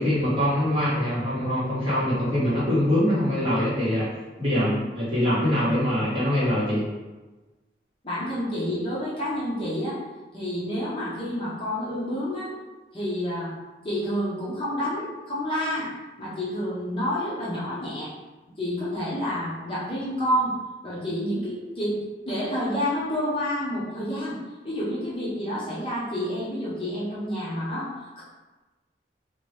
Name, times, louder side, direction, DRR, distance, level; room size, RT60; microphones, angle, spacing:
voice 1, 0.0-4.1 4.4-6.8, equal, 30° right, -10 dB, 1.3 m, -23 dB
voice 2, 8.0-10.0 10.3-12.5 12.9-13.5 13.8-15.9 16.2-18.1 18.6-20.5 20.8-24.4 24.6-28.2, equal, 30° left, -8 dB, 0.8 m, -29 dB
2.9 x 2.6 x 3.3 m, 1.2 s
head